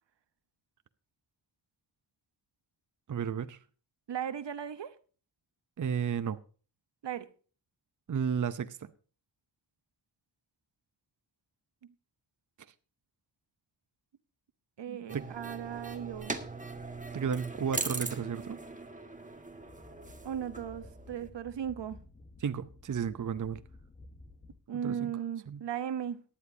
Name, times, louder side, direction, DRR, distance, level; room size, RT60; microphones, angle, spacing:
voice 1, 3.1-3.6 5.8-6.4 8.1-8.9 14.9-15.3 17.1-18.6 22.4-23.6 24.7-25.1 25.5-25.6, right 7 dB, 45° right, 0.7 m, -33 dB
voice 2, 4.1-4.9 7.0-7.3 14.8-16.4 20.2-22.0 24.7-26.2, right 9 dB, 70° right, 1.0 m, -37 dB
sound 1, 15.1-21.3, right 3 dB, 15° right, 1.5 m, -40 dB
sound 2, 19.6-24.6, left 2 dB, 20° left, 1.2 m, -53 dB
18.0 x 11.5 x 2.7 m
wide cardioid pair, 85°, 45 cm